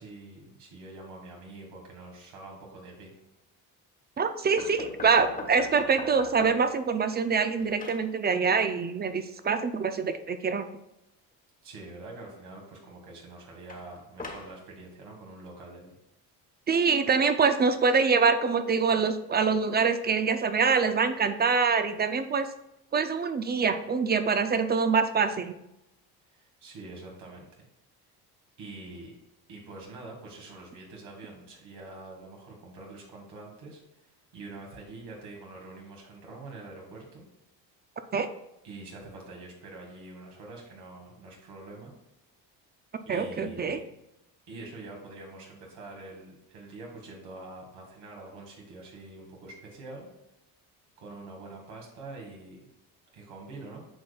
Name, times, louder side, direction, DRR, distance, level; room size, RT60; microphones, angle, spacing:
voice 1, 0.0-3.1 11.6-16.0 26.3-27.7 28.6-29.2 29.5-37.3 38.6-41.9 43.1-43.9 44.5-50.1 51.0-52.7 53.1-53.9, right 2 dB, 80° right, -1 dB, 2.0 m, -45 dB
voice 2, 4.2-10.6 16.7-22.5 22.9-25.6 38.1-38.3 43.1-43.8, right 5 dB, 25° right, 10 dB, 0.4 m, -25 dB
sound 1, 4.6-6.8 7.2-8.1 13.7-14.6, left 3 dB, 20° left, 1.3 m, -41 dB
8.6 x 5.2 x 2.3 m, 0.88 s
cardioid pair, 105°, 39 cm